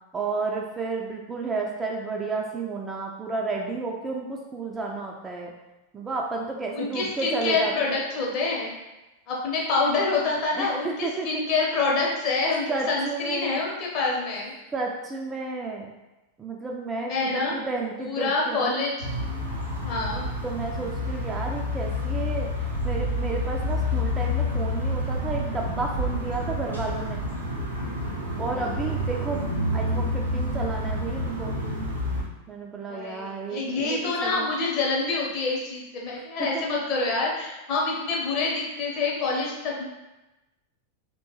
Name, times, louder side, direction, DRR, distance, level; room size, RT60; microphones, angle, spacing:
voice 1, 0.1-5.5 5.9-8.0 10.5-11.4 12.7-13.6 14.7-15.9 16.4-18.7 20.4-27.2 28.4-29.5 29.7-31.5 32.5-34.5 36.5-36.6, right 3 dB, 15° right, -1 dB, 0.3 m, -32 dB
voice 2, 6.7-8.7 9.3-14.5 17.0-17.6 18.0-19.1 19.8-20.3 28.5-28.7 32.8-39.8, left 3 dB, 40° left, -3 dB, 0.7 m, -27 dB
sound 1, 19.0-32.2, left 1 dB, 75° right, 0.6 m, -28 dB
2.8 x 2.2 x 2.9 m, 1.0 s
figure-of-eight pair, 90°, 0 cm